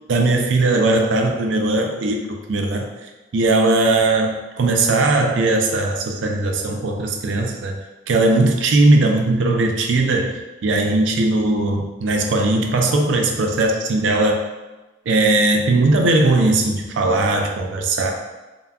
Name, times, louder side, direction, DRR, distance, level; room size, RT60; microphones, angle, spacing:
voice 1, 0.1-7.8 8.1-14.4 15.1-18.1, right 2 dB, 70° right, 3 dB, 0.4 m, -19 dB
2.2 x 2.1 x 3.4 m, 1.1 s
head